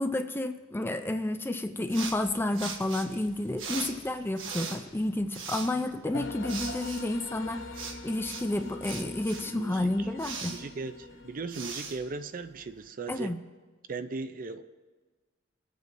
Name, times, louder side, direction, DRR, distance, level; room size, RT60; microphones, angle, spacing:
voice 1, 0.0-7.6 8.0-10.5 13.1-13.4, left 1 dB, 10° left, 7 dB, 0.4 m, -30 dB
sound 1, 1.9-12.8, right 5 dB, 80° right, 1.3 m, -41 dB
voice 2, 5.5-5.8 9.4-10.1 10.5-13.3 13.9-14.6, right 3 dB, 45° right, 9 dB, 0.5 m, -38 dB
sound 2, 6.1-12.1, left 3 dB, 90° left, 0.7 m, -43 dB
20.5 x 8.2 x 2.6 m, 1.3 s
head